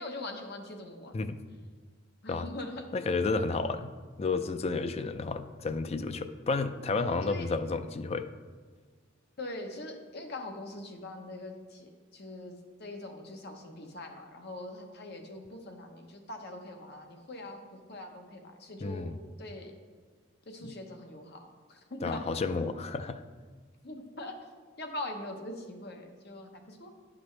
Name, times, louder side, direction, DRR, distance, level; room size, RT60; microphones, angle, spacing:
voice 1, 0.0-1.2 2.2-2.9 7.2-7.5 9.4-19.1 19.4-19.7 20.5-22.3 23.8-24.4 24.8-26.9, left 1 dB, 55° left, 3 dB, 1.0 m, -42 dB
voice 2, 2.9-3.9 4.2-8.3 18.8-19.2 20.6-20.7 22.0-23.2, left 3 dB, 30° left, 9 dB, 0.4 m, -31 dB
10.5 x 6.0 x 3.2 m, 1.5 s
head